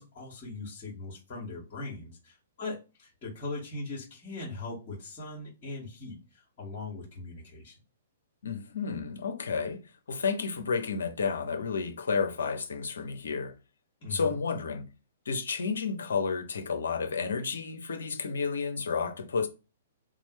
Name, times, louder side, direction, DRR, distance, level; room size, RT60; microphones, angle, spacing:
voice 1, 0.0-7.7 14.0-14.3, left 3 dB, 35° left, 1.5 m, -40 dB
voice 2, 8.4-9.8 10.1-13.5 14.1-14.9 15.3-19.5, left 5 dB, 65° left, 0.6 m, -31 dB
3.0 x 2.2 x 3.0 m
figure-of-eight pair, 115°, 0 cm